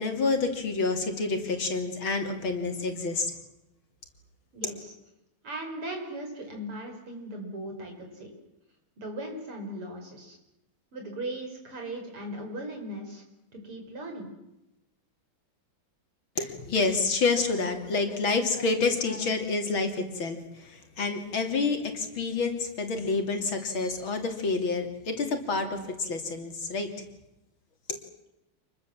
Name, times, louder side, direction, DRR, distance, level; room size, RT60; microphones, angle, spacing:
voice 1, 0.0-3.3 4.6-4.7 16.4-26.9 27.9-28.0, left 4 dB, 65° left, 5 dB, 3.8 m, -28 dB
voice 2, 4.5-4.9 5.4-8.3 9.0-10.4 10.9-13.2 13.5-14.3, right 1 dB, 90° right, 3 dB, 6.6 m, -38 dB
28.0 x 21.5 x 7.5 m, 0.92 s
omnidirectional pair, 2.4 m